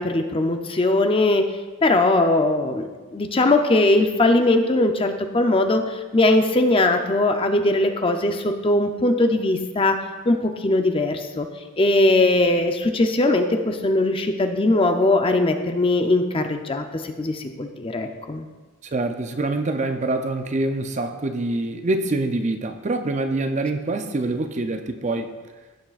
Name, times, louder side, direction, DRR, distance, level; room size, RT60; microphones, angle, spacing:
voice 1, 0.0-1.5 1.8-2.9 3.1-10.0 10.3-11.5 11.8-18.5, left 2 dB, 25° left, 6 dB, 0.5 m, -20 dB
voice 2, 18.8-25.3, right 2 dB, 35° right, 8 dB, 0.4 m, -25 dB
15.5 x 6.4 x 2.4 m, 1.3 s
head